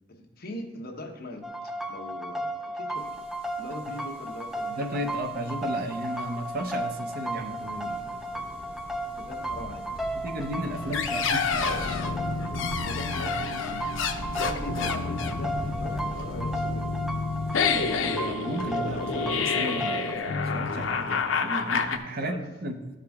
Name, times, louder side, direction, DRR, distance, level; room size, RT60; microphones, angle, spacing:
voice 1, 0.1-3.3 3.6-5.1 9.1-10.1 12.8-14.0 14.3-17.0 22.2-22.5, left 1 dB, 55° left, 3 dB, 1.0 m, -41 dB
sound 1, 1.4-20.2, right 1 dB, ahead, 0.4 m, -35 dB
sound 2, 3.0-18.0, equal, 30° right, 1.0 m, -44 dB
voice 2, 4.7-8.2 10.1-12.0 17.7-22.8, right 1 dB, 50° right, 5 dB, 0.8 m, -34 dB
sound 3, 10.7-22.0, left 5 dB, 85° left, 0.6 m, -29 dB
13.5 x 4.9 x 3.5 m, 1.1 s
head